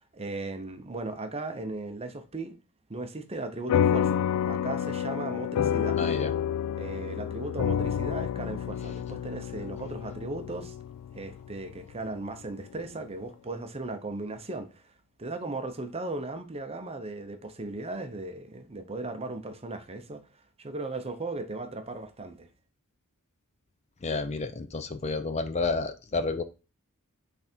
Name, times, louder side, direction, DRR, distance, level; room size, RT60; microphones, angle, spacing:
voice 1, 0.0-2.6 2.9-6.0 6.7-10.7 11.1-14.8 15.2-20.2 20.6-22.5, right 2 dB, 25° right, 0.7 m, -37 dB
sound 1, 3.7-12.5, left 9 dB, 90° left, 0.3 m, -29 dB
voice 2, 6.0-6.3 24.0-26.4, left 3 dB, 30° left, 0.5 m, -30 dB
6.2 x 3.4 x 4.4 m
head